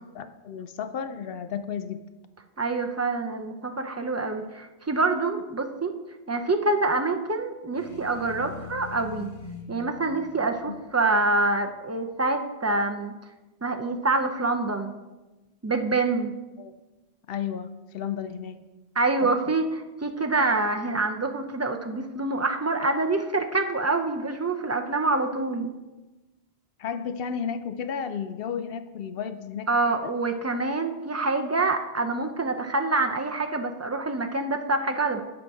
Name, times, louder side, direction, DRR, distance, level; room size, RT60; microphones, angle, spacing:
voice 1, 0.1-2.0 10.6-10.8 16.6-16.7 17.3-18.6 19.2-19.3 26.8-30.1, left 7 dB, 65° left, 11 dB, 0.7 m, -33 dB
voice 2, 2.6-5.9 6.3-9.3 9.7-13.1 13.6-14.9 15.6-16.3 19.0-25.7 29.7-35.2, right 3 dB, 25° right, 5 dB, 0.4 m, -26 dB
sound 1, 7.7-11.7, left 6 dB, 50° left, 1.1 m, -43 dB
7.9 x 5.8 x 4.7 m, 1.1 s
omnidirectional pair, 1.1 m